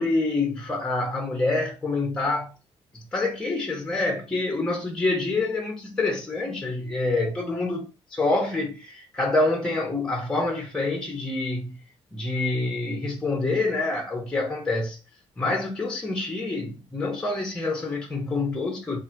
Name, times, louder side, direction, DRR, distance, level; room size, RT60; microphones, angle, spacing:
voice 1, 0.0-2.5 2.9-11.8 12.1-15.0 15.4-19.0, left 2 dB, 10° left, 0.7 m, -27 dB
3.6 x 2.5 x 4.4 m
cardioid pair, 180°, 10 cm